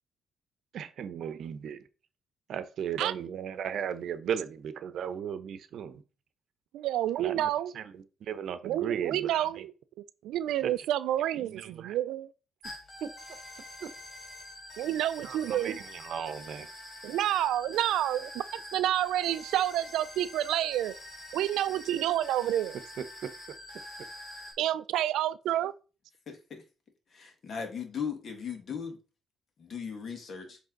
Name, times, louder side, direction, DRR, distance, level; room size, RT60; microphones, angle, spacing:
voice 1, 0.7-1.8 2.5-5.9 7.2-7.5 7.7-7.8 8.3-9.5 11.6-11.9 15.2-16.7, right 8 dB, 70° right, 0.8 m, -36 dB
voice 2, 6.7-7.7 8.6-9.7 10.2-12.3 14.8-15.8 17.0-18.3 18.7-20.9 21.3-22.8 24.6-25.7, right 12 dB, 85° right, 0.4 m, -29 dB
sound 1, 12.6-24.5, left 1 dB, 35° left, 3.2 m, -46 dB
voice 3, 27.1-29.0 29.6-30.6, left 6 dB, 50° left, 1.8 m, -37 dB
7.5 x 3.4 x 3.9 m
cardioid pair, 90°, 0 cm